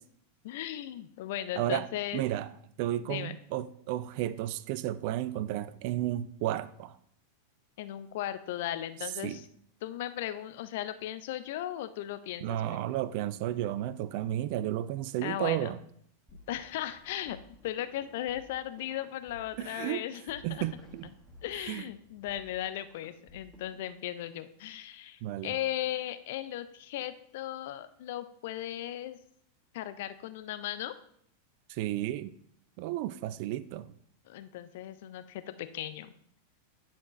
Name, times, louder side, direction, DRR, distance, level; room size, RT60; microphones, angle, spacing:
voice 1, 0.4-2.3 3.0-3.4 7.8-9.5 9.8-12.9 15.2-15.7 16.5-20.7 21.4-29.2 29.7-30.9 34.3-36.2, left 12 dB, 50° left, 0.4 m, -37 dB
voice 2, 1.6-1.9 2.1-2.5 2.8-7.0 9.2-9.4 12.4-15.8 19.6-20.0 20.4-21.1 21.7-21.8 25.2-25.5 31.7-32.3 32.8-33.9, right 13 dB, 45° right, 0.3 m, -33 dB
sound 1, 16.3-23.8, equal, ahead, 1.6 m, -56 dB
10.0 x 4.3 x 3.1 m
figure-of-eight pair, 90°, 0 cm